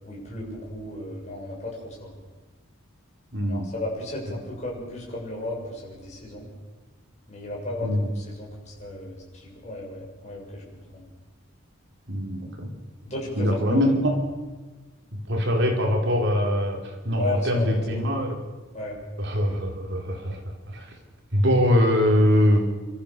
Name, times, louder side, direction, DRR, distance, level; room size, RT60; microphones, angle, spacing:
voice 1, 0.0-2.1 3.5-6.5 7.3-10.6 10.9-11.0 13.1-13.8 17.2-18.1 18.7-19.0, left 2 dB, 35° left, -3 dB, 7.5 m, -34 dB
voice 2, 3.3-3.7 7.8-8.1 12.1-12.7 13.4-14.1 15.3-18.3 19.2-20.4 20.7-20.9 21.3-22.6, equal, 55° right, 1 dB, 4.3 m, -22 dB
28.5 x 14.0 x 6.9 m, 1.3 s
head